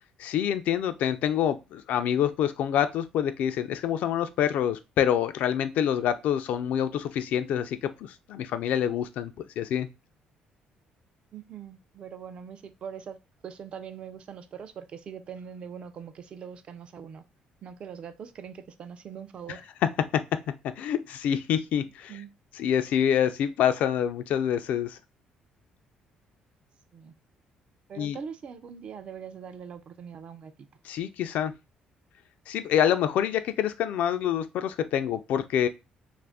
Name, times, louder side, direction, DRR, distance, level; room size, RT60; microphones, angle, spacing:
voice 1, 0.2-9.9 19.8-22.1 22.6-25.0 28.0-28.2 30.8-31.5 32.5-35.7, left 9 dB, 70° left, 0.3 m, -26 dB
voice 2, 11.3-13.2 13.4-17.3 17.6-19.7 22.1-22.3 26.9-27.1 27.9-30.5, right 7 dB, 40° right, 0.3 m, -42 dB
2.6 x 2.4 x 3.4 m
cardioid pair, 145°, 3 cm